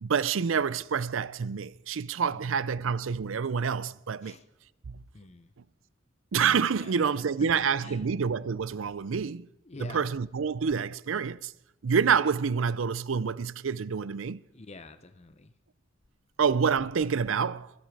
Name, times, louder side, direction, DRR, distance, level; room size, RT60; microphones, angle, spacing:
voice 1, 0.0-4.4 4.9-5.0 6.3-9.5 9.8-11.5 11.8-14.4 16.4-17.7, right 6 dB, 80° right, 0.5 m, -27 dB
voice 2, 5.1-5.5 6.8-7.0 7.8-8.1 9.6-10.1 14.5-15.5, left 3 dB, 35° left, 0.7 m, -47 dB
25.0 x 8.6 x 4.7 m
head